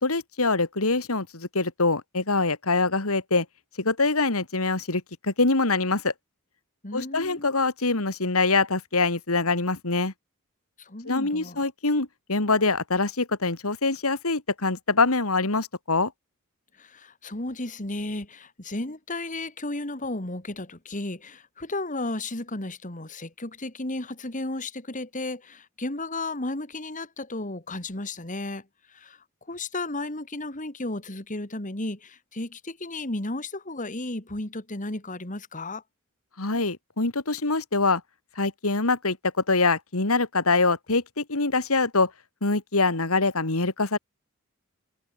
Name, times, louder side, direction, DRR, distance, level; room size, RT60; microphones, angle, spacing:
voice 1, 0.0-3.5 3.8-6.1 6.9-10.1 11.1-16.1 36.4-38.0 38.4-39.2 39.5-42.1 42.4-44.0, left 3 dB, 80° left, 2.6 m, -24 dB
voice 2, 6.8-7.6 10.8-11.7 16.8-29.2 29.5-35.8, left 2 dB, 35° left, 2.6 m, -34 dB
head